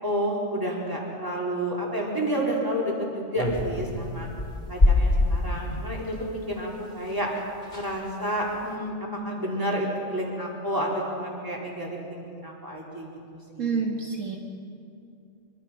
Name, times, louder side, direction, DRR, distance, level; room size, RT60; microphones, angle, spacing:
voice 1, 0.0-4.3 4.7-7.3 7.7-13.1 13.5-13.8, equal, 15° right, -3 dB, 4.3 m, -30 dB
sound 1, 3.3-5.9 7.1-7.2 7.4-7.5 7.6-8.0 8.5-8.7, left 2 dB, 35° left, 3.5 m, -24 dB
voice 2, 13.6-14.4, right 5 dB, 60° right, 0 dB, 2.1 m, -28 dB
25.0 x 23.5 x 5.8 m, 2.5 s
omnidirectional pair, 1.5 m